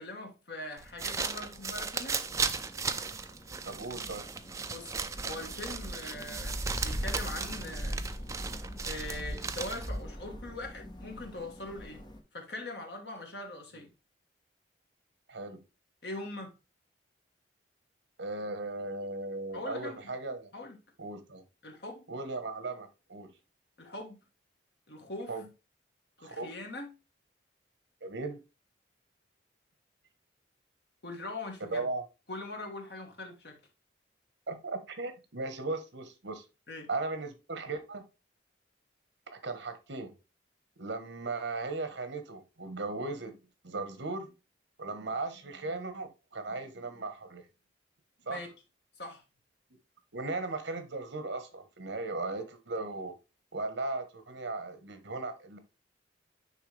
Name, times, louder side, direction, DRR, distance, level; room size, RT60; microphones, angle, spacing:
voice 1, 0.0-2.2 4.7-8.0 8.8-12.0 12.3-13.9 16.0-16.5 19.5-20.1 20.5-20.8 21.6-22.0 23.8-24.2 24.9-25.3 26.2-26.9 31.0-31.8 32.3-33.6 36.7-36.9 48.3-48.5 49.0-49.2, left 2 dB, 60° left, 1.5 m, -42 dB
sound 1, 0.8-10.0, right 5 dB, 15° right, 0.3 m, -36 dB
sound 2, 2.3-12.2, equal, 25° left, 1.2 m, -41 dB
voice 2, 3.6-4.2 13.7-13.8 15.3-15.6 18.2-20.5 21.0-21.4 22.1-23.3 25.3-25.5 26.2-26.5 28.0-28.4 31.7-32.0 34.5-36.4 36.9-38.0 39.3-40.1 40.8-43.4 43.6-44.3 44.8-47.5 48.2-48.4 50.1-53.1 53.5-55.6, right 3 dB, 75° right, 1.2 m, -37 dB
9.3 x 3.3 x 3.3 m
head